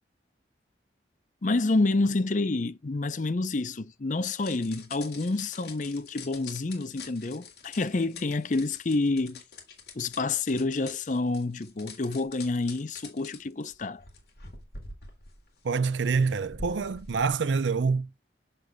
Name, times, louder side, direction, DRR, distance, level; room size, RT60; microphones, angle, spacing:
voice 1, 1.4-9.4 9.9-14.0, left 3 dB, 45° left, 0.5 m, -28 dB
sound 1, 4.3-17.3, left 4 dB, 60° left, 2.4 m, -46 dB
voice 2, 15.6-18.1, right 5 dB, 85° right, 0.5 m, -26 dB
7.6 x 6.5 x 2.3 m
head